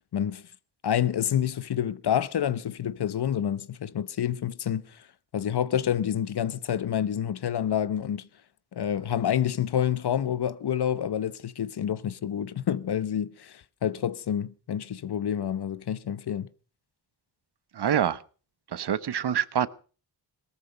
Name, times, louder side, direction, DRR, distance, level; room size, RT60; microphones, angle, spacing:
voice 1, 0.1-0.4 0.8-5.0 5.3-8.3 8.7-16.5, left 9 dB, 65° left, 0.9 m, -28 dB
voice 2, 17.7-18.2 18.7-19.7, right 9 dB, 70° right, 1.1 m, -25 dB
18.5 x 13.5 x 5.3 m
cardioid pair, 55°, 42 cm